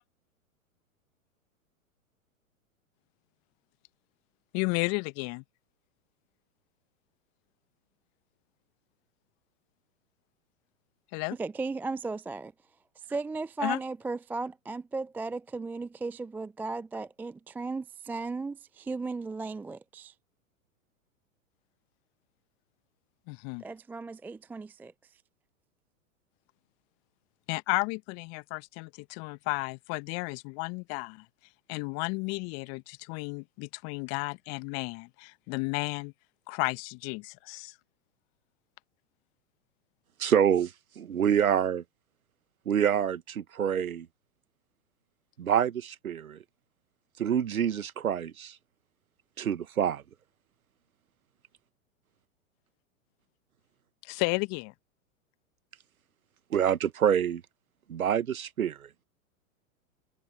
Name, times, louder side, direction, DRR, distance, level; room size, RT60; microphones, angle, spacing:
voice 1, 4.5-5.4 11.1-11.4 13.6-13.8 23.3-23.6 27.5-31.2 31.7-36.1 36.5-37.7 54.0-54.7, left 31 dB, 35° left, 1.2 m, -33 dB
voice 2, 11.4-12.5 13.0-20.1 23.6-24.9, right 3 dB, 5° right, 0.4 m, -36 dB
voice 3, 40.2-41.8 42.7-44.1 45.4-46.4 47.2-48.5 49.4-50.0 56.5-57.4 57.9-58.9, right 9 dB, 80° right, 1.2 m, -27 dB
figure-of-eight pair, 105°, 42 cm